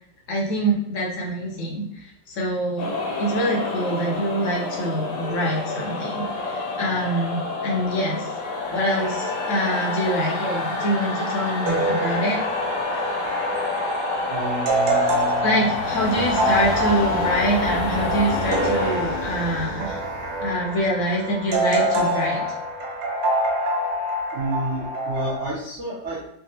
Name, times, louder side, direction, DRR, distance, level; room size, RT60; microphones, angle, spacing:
voice 1, 0.3-2.9 3.2-8.3 8.7-12.4 15.4-20.0 20.4-22.4, equal, 65° left, -2 dB, 0.8 m, -25 dB
sound 1, 2.8-21.3, left 2 dB, 85° left, 1.4 m, -28 dB
sound 2, 11.7-25.4, right 1 dB, 85° right, 1.3 m, -26 dB
voice 2, 14.3-16.2 24.3-26.3, right 2 dB, 65° right, -7 dB, 0.7 m, -31 dB
3.6 x 2.0 x 2.7 m, 0.74 s
omnidirectional pair, 1.9 m